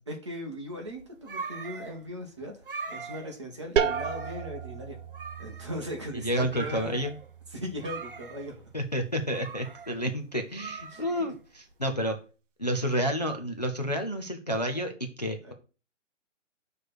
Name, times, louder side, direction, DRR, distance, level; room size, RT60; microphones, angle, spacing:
voice 1, 0.1-5.0 5.4-6.9 7.5-8.6 10.9-11.1 15.4-15.5, equal, 25° right, 0 dB, 1.0 m, -39 dB
sound 1, 0.7-11.7, right 4 dB, 45° right, 0.5 m, -42 dB
sound 2, 3.8-9.3, right 7 dB, 85° right, 0.7 m, -35 dB
voice 2, 6.2-7.1 8.7-12.2 12.6-15.5, equal, 35° left, 3 dB, 0.5 m, -30 dB
6.6 x 3.3 x 5.9 m, 0.34 s
hypercardioid pair, 180°, 37 cm